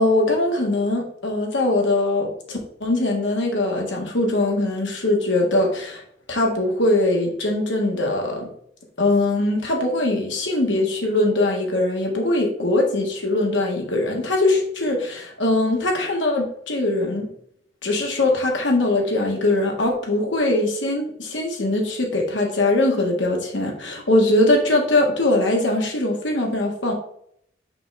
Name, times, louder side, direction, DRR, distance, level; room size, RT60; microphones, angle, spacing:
voice 1, 0.0-6.0 6.3-8.5 9.0-17.3 17.8-26.9, left 2 dB, 85° left, 0 dB, 1.7 m, -21 dB
5.9 x 5.0 x 3.3 m, 0.66 s
head